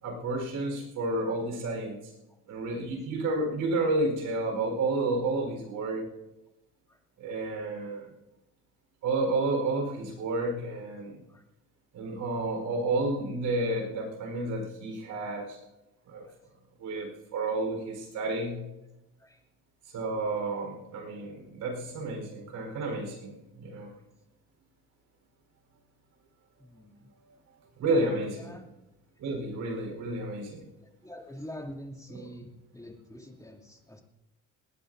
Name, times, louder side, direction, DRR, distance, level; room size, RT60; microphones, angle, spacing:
voice 1, 0.0-2.1 2.5-6.0 7.2-8.1 9.0-11.1 11.9-15.6 16.1-16.3 16.8-18.6 19.9-23.9 27.8-28.6 29.2-30.6 32.1-32.3, right 2 dB, 85° right, 2 dB, 4.5 m, -31 dB
voice 2, 26.6-27.0 28.4-28.6 31.0-34.0, equal, 10° left, -1 dB, 2.8 m, -45 dB
19.5 x 18.5 x 2.7 m, 1.0 s
cardioid pair, 90°, 30 cm